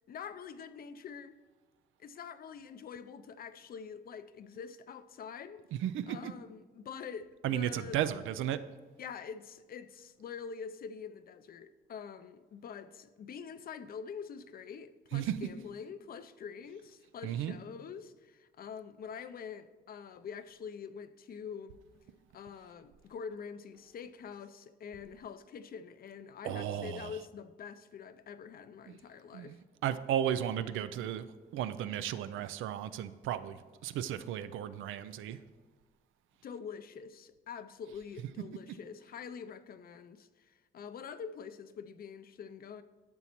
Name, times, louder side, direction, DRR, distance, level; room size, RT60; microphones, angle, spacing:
voice 1, 0.1-1.4 2.0-5.6 6.1-8.0 9.0-21.8 22.3-29.6 36.4-42.8, left 6 dB, 50° left, 0.5 m, -45 dB
voice 2, 5.8-6.3 7.4-8.6 15.1-15.4 17.2-17.5 26.4-27.1 29.3-29.6 29.8-31.3 31.5-33.6 33.8-35.4, right 10 dB, 85° right, 0.4 m, -34 dB
10.5 x 7.0 x 3.0 m
cardioid pair, 90°, 20 cm